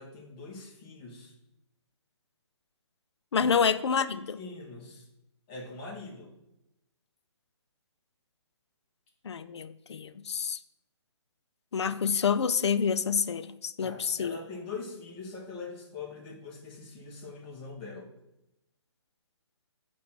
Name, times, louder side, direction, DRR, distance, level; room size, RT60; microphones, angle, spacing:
voice 1, 0.0-1.3 3.4-3.6 4.1-5.1 5.5-6.3 13.8-18.1, left 4 dB, 25° left, -2 dB, 1.6 m, -43 dB
voice 2, 3.3-4.4 9.2-10.6 11.7-14.4, left 6 dB, 65° left, 13 dB, 0.5 m, -28 dB
9.3 x 3.2 x 5.9 m, 0.89 s
figure-of-eight pair, 145°, 15 cm